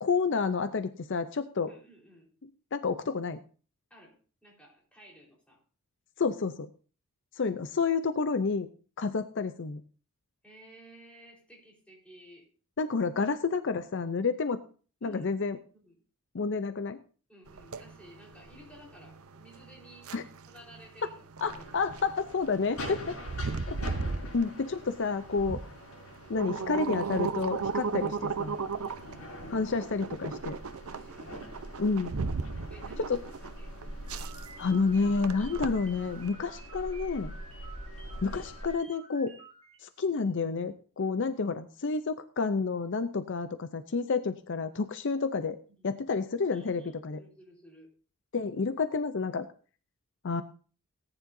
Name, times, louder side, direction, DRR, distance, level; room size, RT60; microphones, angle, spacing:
voice 1, 0.0-1.7 2.7-3.4 6.2-6.7 7.4-8.7 9.0-9.8 12.8-14.6 15.0-15.6 16.3-17.0 20.1-20.2 21.4-23.0 23.7-23.8 24.3-25.6 26.3-28.6 29.5-30.6 31.8-32.1 33.1-33.2 34.6-37.3 38.2-39.3 39.8-45.6 45.8-47.2 48.3-49.5 50.2-50.4, left 4 dB, 55° left, 11 dB, 0.6 m, -29 dB
voice 2, 1.7-2.3 3.9-5.6 10.4-12.5 15.0-16.0 17.3-20.1 20.5-21.7 22.7-23.9 27.9-28.0 28.8-29.6 30.9-31.5 32.7-33.2 33.4-33.7 45.1-45.2 45.8-45.9 46.5-47.9, equal, 5° left, -3 dB, 4.2 m, -54 dB
sound 1, 17.5-36.3, right 4 dB, 75° right, 0.7 m, -36 dB
sound 2, 21.4-38.8, equal, 70° left, 6.7 m, -44 dB
sound 3, 34.1-39.8, right 4 dB, 25° right, 3.1 m, -51 dB
18.5 x 9.9 x 2.7 m, 0.39 s
head